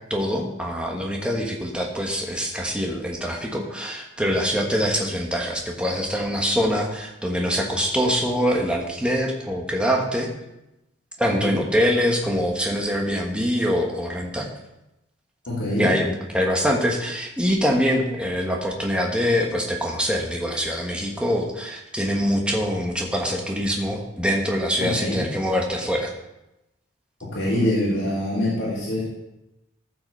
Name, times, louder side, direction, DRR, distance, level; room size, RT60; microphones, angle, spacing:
voice 1, 0.1-10.3 11.2-14.5 15.8-26.1, equal, 5° right, 0 dB, 1.3 m, -24 dB
voice 2, 15.5-15.9 24.8-25.2 27.3-29.0, left 1 dB, 60° left, -11 dB, 3.6 m, -24 dB
14.5 x 5.9 x 4.4 m, 0.92 s
head